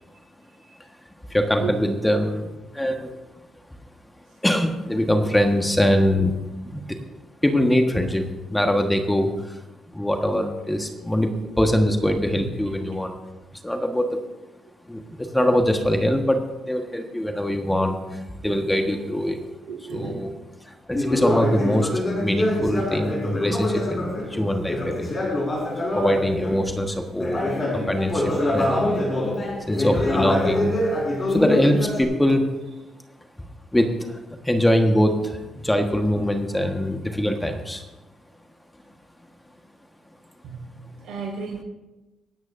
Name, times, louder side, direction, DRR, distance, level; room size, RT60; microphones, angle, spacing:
voice 1, 1.3-3.1 4.4-6.3 6.6-7.0 7.4-9.6 9.9-13.1 13.6-14.2 14.9-19.4 19.9-20.3 20.6-21.9 22.2-25.2 25.9-27.4 27.7-28.9 29.7-30.8 31.3-32.4 33.7-37.9, equal, 10° left, 4 dB, 1.5 m, -23 dB
voice 2, 2.5-2.9 6.0-6.2 12.4-12.5 18.4-18.6 19.7-20.3 27.3-27.8 40.4-41.6, right 5 dB, 75° right, 0 dB, 5.0 m, -35 dB
Conversation, 20.9-26.7 27.1-32.0, left 1 dB, 35° left, 5.1 m, -25 dB
25.5 x 9.4 x 2.7 m, 1.1 s
supercardioid pair, 65°, 0 cm